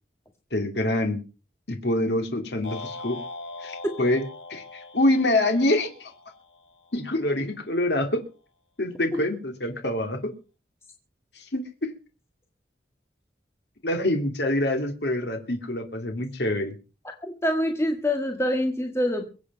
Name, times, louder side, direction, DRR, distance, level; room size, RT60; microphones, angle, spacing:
voice 1, 0.5-1.2 1.7-3.2 3.6-6.1 6.9-8.2 8.8-10.3 11.3-11.9 13.8-16.7, left 1 dB, 70° left, 5 dB, 2.5 m, -26 dB
sound 1, 2.6-7.0, left 3 dB, 85° left, 2.8 m, -41 dB
voice 2, 17.2-19.2, left 1 dB, 15° left, 3 dB, 1.8 m, -25 dB
23.0 x 8.5 x 5.3 m, 0.36 s
head